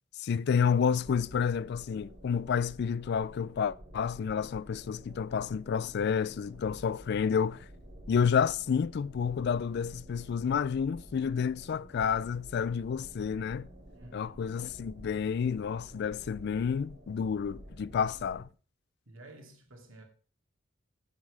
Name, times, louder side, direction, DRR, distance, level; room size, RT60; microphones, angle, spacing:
voice 1, 0.2-7.6 8.1-13.7 14.1-18.4, left 6 dB, 55° left, 0.3 m, -30 dB
sound 1, 0.8-18.4, equal, 45° right, 2.5 m, -51 dB
voice 2, 13.9-14.4 19.1-20.0, right 2 dB, 75° right, 2.4 m, -52 dB
8.4 x 7.4 x 4.9 m
head